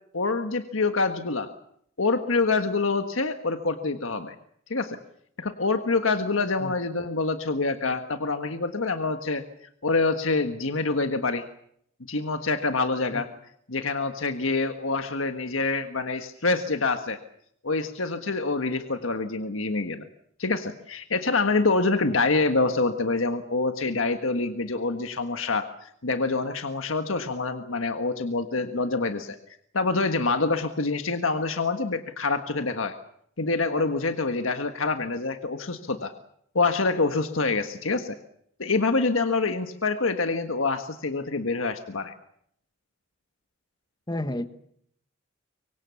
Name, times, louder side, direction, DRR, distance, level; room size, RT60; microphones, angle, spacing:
voice 1, 0.1-1.5 2.0-4.3 4.7-5.0 5.4-9.4 9.8-11.5 12.1-13.3 13.7-17.2 17.6-20.0 20.4-29.4 29.7-33.0 33.4-36.1 36.5-38.2 38.6-42.1, left 3 dB, 85° left, 7 dB, 1.5 m, -26 dB
voice 2, 44.1-44.5, left 1 dB, 20° left, 10 dB, 1.4 m, -30 dB
24.5 x 24.0 x 7.1 m, 0.71 s
head